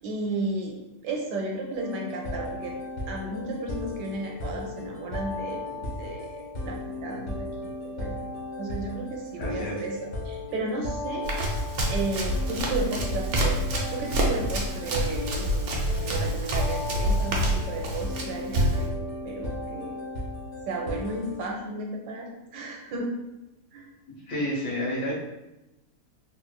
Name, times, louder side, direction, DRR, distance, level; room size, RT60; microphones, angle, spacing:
voice 1, 0.0-0.8 1.0-2.7 3.1-8.3 8.6-10.0 10.2-11.3 11.8-13.6 13.9-20.0 20.7-23.1 23.7-23.9, right 3 dB, 80° right, 1 dB, 1.2 m, -34 dB
sound 1, 1.7-21.5, left 2 dB, 50° left, 0.5 m, -36 dB
voice 2, 9.4-9.8 24.3-25.1, equal, 75° left, -4 dB, 1.6 m, -29 dB
Run, 11.2-18.9, equal, 65° right, 0.7 m, -27 dB
3.5 x 3.0 x 2.2 m, 0.96 s
omnidirectional pair, 1.8 m